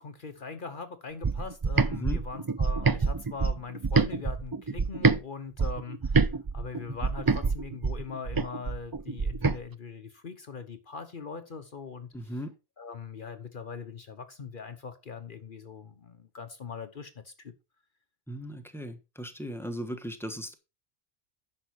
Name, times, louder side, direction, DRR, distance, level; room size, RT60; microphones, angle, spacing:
voice 1, 0.0-12.3 12.8-17.5, left 5 dB, 55° left, 1.0 m, -41 dB
sound 1, 1.2-5.2 5.6-9.6, right 4 dB, 35° right, 0.3 m, -26 dB
voice 2, 12.1-12.5 18.3-20.5, equal, ahead, 1.2 m, -37 dB
10.5 x 6.5 x 4.6 m
omnidirectional pair, 1.1 m